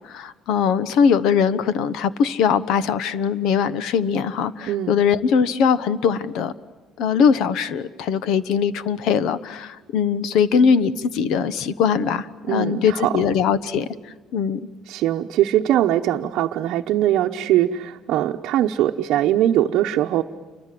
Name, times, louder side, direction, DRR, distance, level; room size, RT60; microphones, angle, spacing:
voice 1, 0.1-6.5 7.0-13.9 14.3-14.6, left 6 dB, 65° left, 16 dB, 1.1 m, -21 dB
voice 2, 4.7-5.0 12.5-13.1 14.9-20.2, right 12 dB, 65° right, -1 dB, 0.9 m, -21 dB
29.0 x 25.0 x 7.7 m, 1.3 s
cardioid pair, 165°, 0 cm